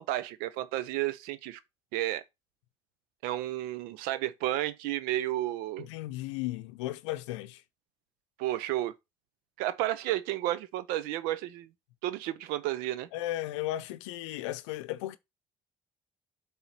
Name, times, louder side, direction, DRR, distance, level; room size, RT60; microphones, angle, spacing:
voice 1, 0.0-1.6 1.9-2.2 3.2-5.9 8.4-8.9 9.6-11.7 12.0-13.1, right 14 dB, 80° right, 0.8 m, -32 dB
voice 2, 5.8-7.6 13.1-15.2, left 15 dB, 85° left, 0.6 m, -35 dB
7.9 x 3.7 x 5.8 m
hypercardioid pair, 50°, 15 cm